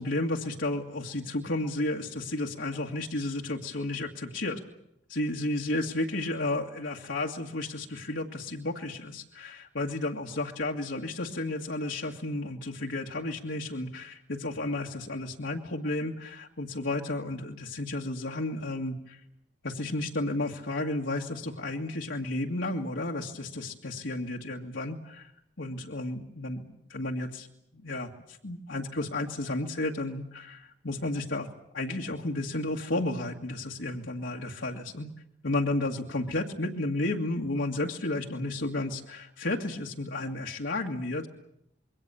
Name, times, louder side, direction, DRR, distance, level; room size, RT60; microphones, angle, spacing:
voice 1, 0.0-4.6 5.1-19.2 19.6-25.3 25.6-27.5 27.7-31.5 31.7-35.1 35.4-41.3, left 2 dB, 80° left, -1 dB, 2.0 m, -32 dB
27.0 x 22.5 x 7.1 m, 0.76 s
head